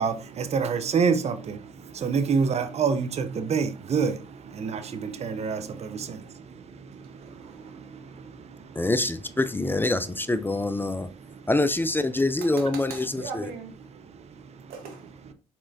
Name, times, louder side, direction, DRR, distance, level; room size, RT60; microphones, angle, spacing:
voice 1, 0.0-1.6 1.9-4.2 4.5-6.2, right 5 dB, 45° right, 0.6 m, -26 dB
voice 2, 7.0-7.7 12.4-13.8 14.7-15.1, right 5 dB, 80° right, 1.1 m, -40 dB
voice 3, 8.8-11.1 11.5-13.5, left 2 dB, 15° left, 0.4 m, -25 dB
4.3 x 4.2 x 2.6 m
supercardioid pair, 55°, 15 cm